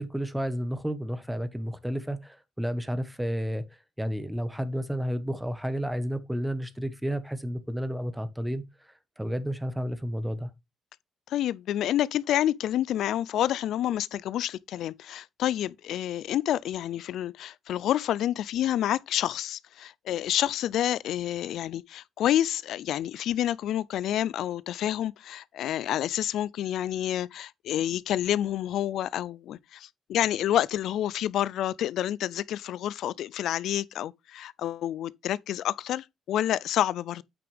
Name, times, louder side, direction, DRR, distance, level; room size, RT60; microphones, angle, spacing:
voice 1, 0.0-3.6 4.0-8.6 9.2-10.5, equal, 5° right, 1.3 m, -31 dB
voice 2, 11.3-37.2, left 12 dB, 80° left, 0.4 m, -28 dB
9.0 x 6.1 x 3.5 m
cardioid pair, 90°, 0 cm